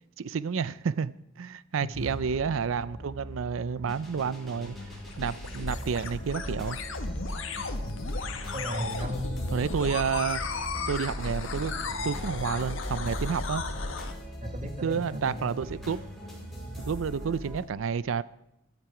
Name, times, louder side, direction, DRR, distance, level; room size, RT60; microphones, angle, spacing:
voice 1, 0.0-4.8 5.2-6.8 9.5-10.4 10.8-13.6 14.8-16.0 16.8-18.2, right 6 dB, 80° right, 0.4 m, -30 dB
sound 1, 1.9-17.6, equal, ahead, 6.5 m, -41 dB
sound 2, 4.4-14.1, left 3 dB, 80° left, 1.5 m, -34 dB
voice 2, 8.5-9.6 14.4-15.5, equal, 40° right, 1.7 m, -35 dB
14.0 x 12.0 x 4.9 m
head